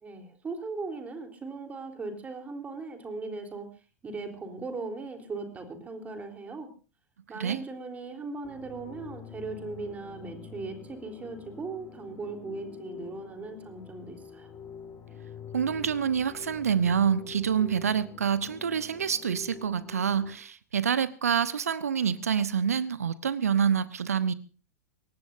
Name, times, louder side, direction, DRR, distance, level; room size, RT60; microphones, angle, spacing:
voice 1, 0.0-3.7 4.0-6.7 7.3-14.5, right 3 dB, 15° right, 5 dB, 3.7 m, -38 dB
sound 1, 8.4-20.3, left 6 dB, 15° left, 6.9 m, -46 dB
voice 2, 15.5-24.3, right 7 dB, 70° right, 16 dB, 1.0 m, -27 dB
23.5 x 18.5 x 2.7 m, 0.35 s
figure-of-eight pair, 95°, 8 cm